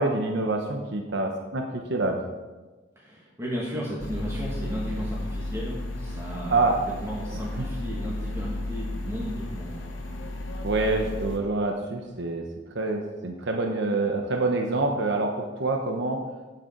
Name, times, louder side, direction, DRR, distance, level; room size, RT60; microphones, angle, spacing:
voice 1, 0.0-2.2 6.5-6.8 7.6-7.7 10.6-12.5 12.7-16.2, right 2 dB, 65° right, 3 dB, 1.0 m, -26 dB
voice 2, 3.0-6.6 7.0-9.9, equal, 15° right, -6 dB, 1.9 m, -34 dB
sound 1, 4.0-11.4, left 1 dB, 90° left, 1.3 m, -34 dB
11.0 x 8.1 x 4.5 m, 1.3 s
head